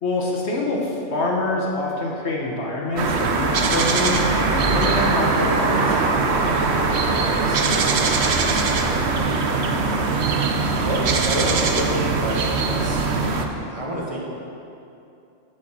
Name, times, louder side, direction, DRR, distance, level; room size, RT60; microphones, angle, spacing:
voice 1, 0.0-6.1, left 2 dB, 60° left, -2 dB, 1.4 m, -25 dB
sound 1, 3.0-13.5, right 4 dB, 65° right, 0.9 m, -21 dB
voice 2, 6.7-10.0 10.8-13.3 13.7-14.2, right 1 dB, 30° right, -3 dB, 1.5 m, -31 dB
8.7 x 5.1 x 7.2 m, 2.7 s
omnidirectional pair, 1.3 m